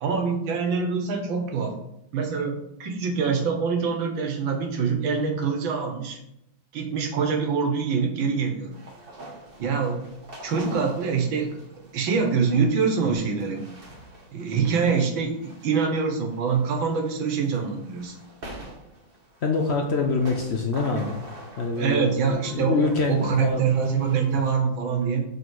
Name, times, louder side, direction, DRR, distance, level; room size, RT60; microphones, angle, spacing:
voice 1, 0.0-1.7 2.1-6.2 6.7-8.7 9.6-10.0 10.4-11.6 11.9-13.7 14.3-18.2 21.8-25.2, right 5 dB, 75° right, 4 dB, 1.9 m, -25 dB
sound 1, 8.7-24.5, right 1 dB, 40° right, 0.9 m, -46 dB
voice 2, 19.4-21.1 21.6-23.6, left 3 dB, 75° left, 2 dB, 0.6 m, -25 dB
5.4 x 4.3 x 6.2 m, 0.80 s
omnidirectional pair, 2.2 m